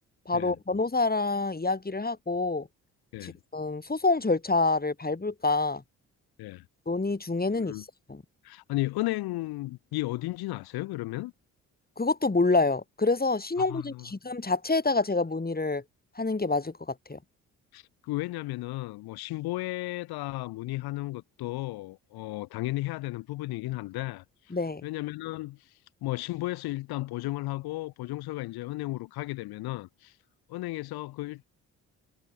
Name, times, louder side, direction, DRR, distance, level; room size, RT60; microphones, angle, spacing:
voice 1, 0.3-2.7 3.2-5.8 6.9-8.2 12.0-15.8 16.2-17.2 24.5-24.8, left 3 dB, 25° left, 7.9 m, -27 dB
voice 2, 7.5-7.8 8.4-11.3 13.7-14.0 17.7-24.2 24.8-25.7 26.0-30.1 30.5-31.4, left 18 dB, 80° left, 5.1 m, -34 dB
hypercardioid pair, 50°, 37 cm